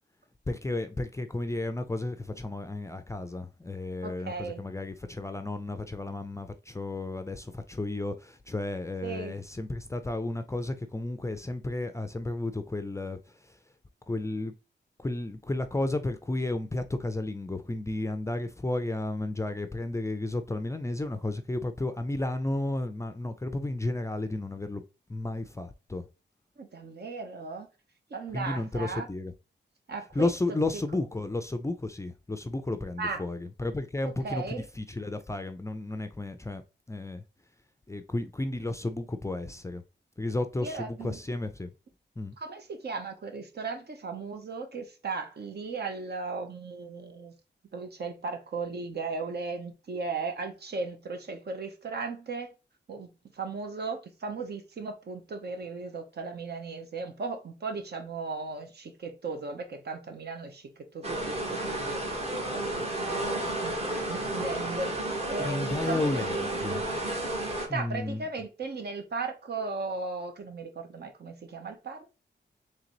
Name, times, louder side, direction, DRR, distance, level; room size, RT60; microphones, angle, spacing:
voice 1, 0.5-13.2 13.5-13.6 14.1-14.5 15.0-24.8 25.1-26.0 28.3-29.3 30.2-36.6 36.9-37.2 37.9-39.8 40.2-41.7 42.2-42.4 65.4-66.8 67.7-68.2, left 2 dB, 15° left, 0.4 m, -33 dB
voice 2, 4.0-4.6 9.0-9.3 26.6-27.7 28.1-29.1 29.9-30.3 33.0-33.2 34.2-34.6 40.6-41.2 42.4-47.4 47.7-52.5 52.9-66.2 67.7-72.1, right 4 dB, 60° right, 0.9 m, -36 dB
sound 1, 61.0-67.7, right 1 dB, 35° right, 1.3 m, -32 dB
3.9 x 3.3 x 2.9 m
wide cardioid pair, 110°, 19 cm